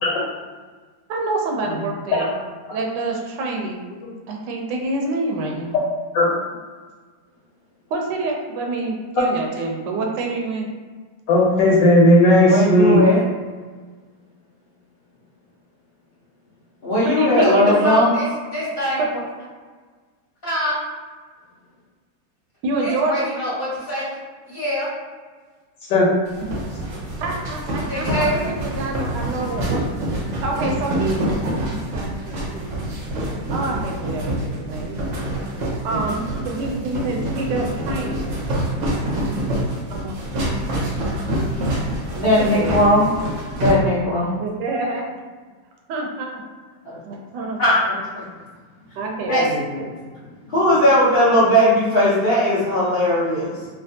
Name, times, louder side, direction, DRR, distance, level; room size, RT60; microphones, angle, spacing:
voice 1, 1.1-2.3 2.7-3.8 4.3-5.7 7.9-10.7 17.0-18.0 22.6-23.3 27.2-29.8 30.4-31.2 31.6-33.0 33.5-35.0 35.8-38.3 39.9-40.2 42.2-43.1 44.4-45.1 45.9-46.4 47.0-47.6 49.0-50.0, right 2 dB, 80° right, 1 dB, 1.2 m, -27 dB
voice 2, 11.3-13.0 25.9-26.1, left 1 dB, 85° left, -5 dB, 1.5 m, -14 dB
voice 3, 12.4-13.2 16.8-18.1 42.1-43.1 43.6-44.3 46.8-47.0 47.6-47.8 48.1-48.2 49.3-49.4 50.5-53.6, left 1 dB, 50° left, -11 dB, 0.7 m, -17 dB
voice 4, 17.4-18.3 18.5-19.2 20.4-20.8 22.8-24.1 24.5-24.9 27.9-28.4, equal, 35° left, -10 dB, 1.2 m, -25 dB
sound 1, 26.3-43.7, right 1 dB, 60° right, 0.8 m, -26 dB
3.3 x 2.4 x 2.6 m, 1.5 s
omnidirectional pair, 1.9 m